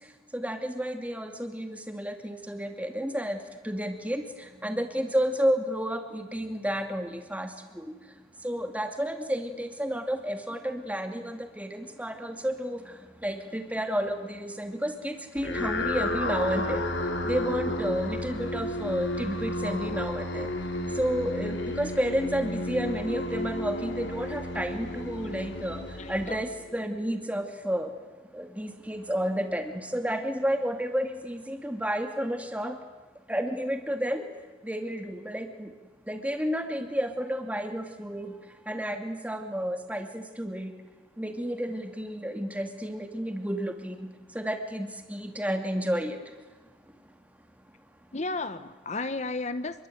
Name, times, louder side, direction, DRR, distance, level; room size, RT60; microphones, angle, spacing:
voice 1, 0.3-3.4 3.7-4.2 4.6-7.5 8.4-12.8 13.2-16.8 17.3-20.5 21.0-25.8 26.1-27.9 28.4-29.6 29.9-32.7 33.3-34.2 34.6-35.7 36.1-38.3 38.7-40.7 41.2-44.0 44.4-46.2, equal, 5° right, 5 dB, 2.3 m, -31 dB
sound 1, 15.4-26.8, left 1 dB, 60° left, 3.0 m, -32 dB
voice 2, 26.0-26.4 48.1-49.9, left 3 dB, 35° left, 12 dB, 1.0 m, -33 dB
27.0 x 23.0 x 9.3 m, 1.2 s
head